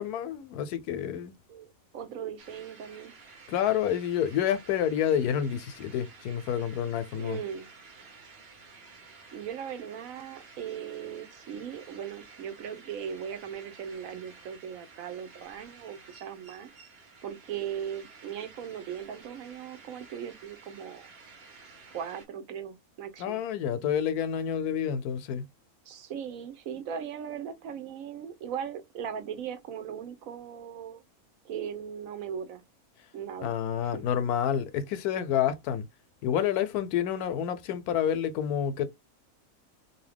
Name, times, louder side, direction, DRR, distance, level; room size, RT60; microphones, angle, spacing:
voice 1, 0.0-1.4 3.5-7.4 23.2-25.5 33.4-35.8 36.2-38.9, left 9 dB, 80° left, 1.1 m, -28 dB
voice 2, 1.5-3.1 7.2-7.7 9.3-16.7 17.2-21.1 21.9-23.4 25.9-31.0 31.4-32.6 33.1-33.5 33.8-34.0, right 8 dB, 70° right, 1.0 m, -38 dB
sound 1, 2.4-22.3, right 4 dB, 50° right, 0.9 m, -52 dB
2.7 x 2.6 x 3.4 m
omnidirectional pair, 1.6 m